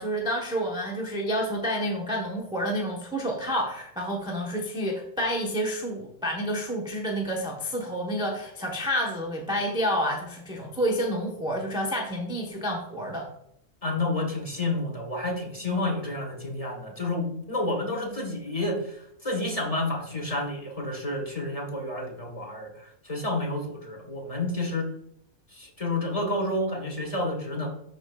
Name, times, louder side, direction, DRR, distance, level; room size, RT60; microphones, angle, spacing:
voice 1, 0.0-13.3, equal, 5° right, -1 dB, 0.7 m, -29 dB
voice 2, 13.8-24.9 25.5-27.7, left 2 dB, 30° left, -1 dB, 1.4 m, -30 dB
11.5 x 4.1 x 2.3 m, 0.75 s
omnidirectional pair, 1.4 m